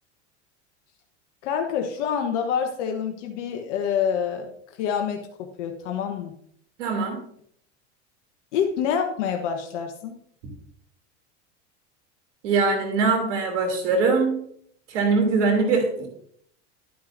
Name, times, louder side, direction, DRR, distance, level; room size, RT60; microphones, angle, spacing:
voice 1, 1.4-4.5 4.8-6.3 8.5-10.1, left 7 dB, 75° left, 4 dB, 1.2 m, -27 dB
voice 2, 6.8-7.2 12.4-14.4 14.9-16.1, right 4 dB, 80° right, 4 dB, 3.1 m, -22 dB
11.0 x 9.3 x 2.6 m, 0.65 s
hypercardioid pair, 95°, 35 cm